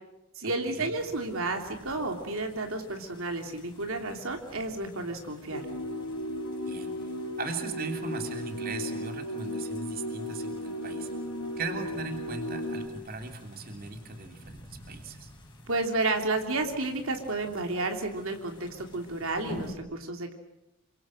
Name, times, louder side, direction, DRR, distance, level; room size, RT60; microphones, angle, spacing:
voice 1, 0.4-5.6 15.7-20.3, right 2 dB, 70° right, 4 dB, 3.0 m, -31 dB
sound 1, 1.0-19.7, equal, 20° left, 5.2 m, -51 dB
sound 2, 5.5-12.9, left 1 dB, 80° left, 3.7 m, -35 dB
voice 2, 6.6-7.1 7.4-11.1 11.6-15.3, right 3 dB, 40° right, 4 dB, 3.1 m, -38 dB
28.5 x 24.5 x 7.7 m, 0.87 s
head